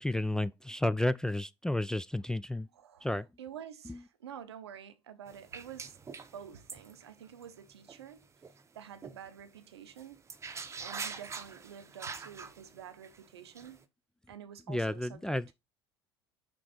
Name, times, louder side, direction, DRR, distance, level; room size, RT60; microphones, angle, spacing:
voice 1, 0.0-2.7 3.0-3.3 3.9-4.0 14.7-15.5, left 1 dB, 5° left, 0.3 m, -31 dB
voice 2, 2.7-6.0 6.3-8.5 8.7-10.2 10.8-13.8 14.3-15.4, right 9 dB, 75° right, 0.7 m, -49 dB
sound 1, 5.3-8.6 9.0-9.2 9.6-9.7 10.0-13.8, right 5 dB, 20° right, 0.7 m, -44 dB
6.1 x 3.4 x 5.0 m
figure-of-eight pair, 65°, 14 cm